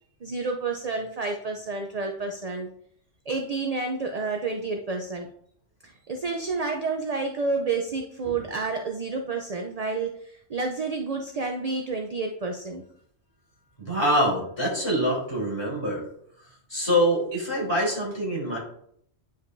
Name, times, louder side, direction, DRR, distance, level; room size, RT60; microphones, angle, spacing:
voice 1, 0.2-2.7 3.3-5.3 5.8-12.8, right 3 dB, 45° right, 3 dB, 0.5 m, -30 dB
voice 2, 13.8-16.0 16.7-18.6, equal, 20° left, -5 dB, 3.3 m, -25 dB
9.5 x 5.2 x 2.6 m, 0.65 s
omnidirectional pair, 1.3 m